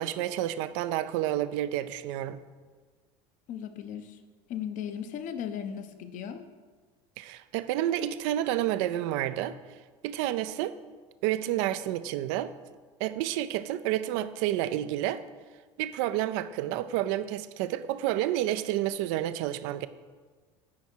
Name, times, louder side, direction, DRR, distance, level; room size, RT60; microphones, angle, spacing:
voice 1, 0.0-2.4 7.2-9.6 10.0-10.7 11.2-12.5 13.0-15.2 15.8-19.9, right 13 dB, 75° right, 14 dB, 0.5 m, -30 dB
voice 2, 3.5-4.2 4.5-6.4, left 8 dB, 55° left, 9 dB, 0.8 m, -36 dB
9.5 x 4.8 x 4.5 m, 1.4 s
supercardioid pair, 100°, 16 cm